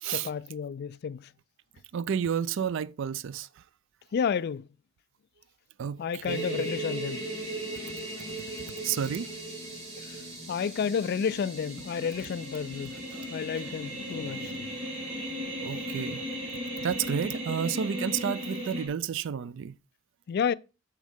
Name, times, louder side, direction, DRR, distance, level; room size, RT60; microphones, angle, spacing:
voice 1, 0.1-1.3 4.1-4.6 6.0-7.2 10.1-10.2 10.5-13.0 13.3-14.7 20.3-20.5, left 7 dB, 50° left, 0.3 m, -31 dB
voice 2, 1.9-3.5 5.8-6.7 7.7-7.9 8.2-8.5 8.8-9.3 12.9-13.4 15.6-16.2 16.8-19.8, right 8 dB, 65° right, 0.4 m, -31 dB
sound 1, 6.3-18.9, equal, 30° right, 3.1 m, -37 dB
7.4 x 6.5 x 3.5 m
head